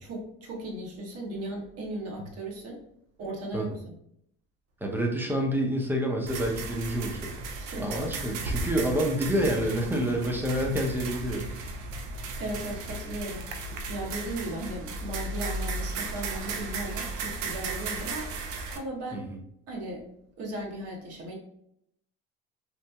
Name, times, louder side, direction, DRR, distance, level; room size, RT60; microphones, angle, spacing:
voice 1, 0.0-2.8 3.2-3.8 7.6-8.0 12.4-13.4 13.9-18.2 18.7-19.3 19.7-20.1 20.4-21.3, right 1 dB, 55° right, -1 dB, 0.9 m, -36 dB
voice 2, 4.8-7.3 7.8-11.4 19.1-19.2, equal, 5° right, 0 dB, 0.6 m, -28 dB
sound 1, 6.3-18.8, right 3 dB, 75° right, 0.5 m, -35 dB
2.9 x 2.5 x 2.2 m, 0.73 s
supercardioid pair, 90°, 29 cm